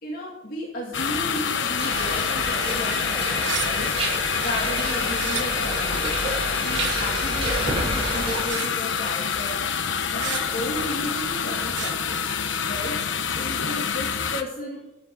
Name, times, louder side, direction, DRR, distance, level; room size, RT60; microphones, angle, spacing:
voice 1, 0.0-6.1 6.6-9.6 10.1-12.2 12.6-13.0 13.3-14.9, left 1 dB, 50° left, -3 dB, 2.5 m, -34 dB
sound 1, 0.9-14.4, left 6 dB, 90° left, 0.9 m, -27 dB
sound 2, 1.8-8.4, right 2 dB, 35° right, 5.3 m, -30 dB
sound 3, 3.4-3.7 5.1-5.4 6.7-7.0 8.5-8.8 10.2-10.4 11.7-11.9, right 9 dB, 80° right, 1.0 m, -31 dB
14.0 x 8.1 x 6.2 m, 0.94 s
head